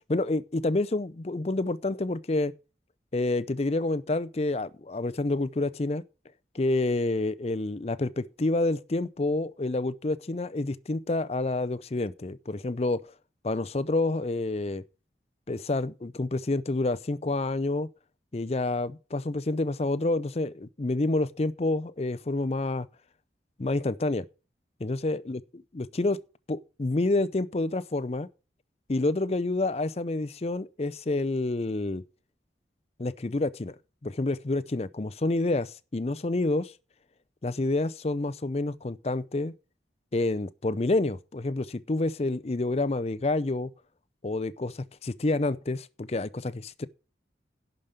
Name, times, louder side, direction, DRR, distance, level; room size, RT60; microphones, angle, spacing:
voice 1, 0.1-2.5 3.1-6.0 6.5-13.0 13.4-14.8 15.5-17.9 18.3-22.9 23.6-24.2 24.8-26.2 26.5-28.3 28.9-32.0 33.0-33.8 34.0-36.7 37.4-39.5 40.1-43.7 44.2-46.9, left 2 dB, 35° left, 0.5 m, -28 dB
11.0 x 5.2 x 6.7 m
head